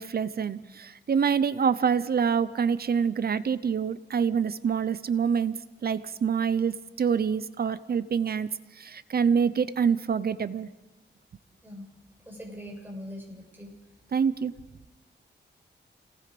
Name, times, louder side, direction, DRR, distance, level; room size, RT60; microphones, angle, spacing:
voice 1, 0.0-8.5 8.8-10.7 14.1-14.5, right 6 dB, 55° right, 15 dB, 0.7 m, -26 dB
voice 2, 12.3-13.7, equal, 10° right, -1 dB, 6.8 m, -41 dB
28.5 x 19.0 x 5.2 m, 1.1 s
wide cardioid pair, 130°, 19 cm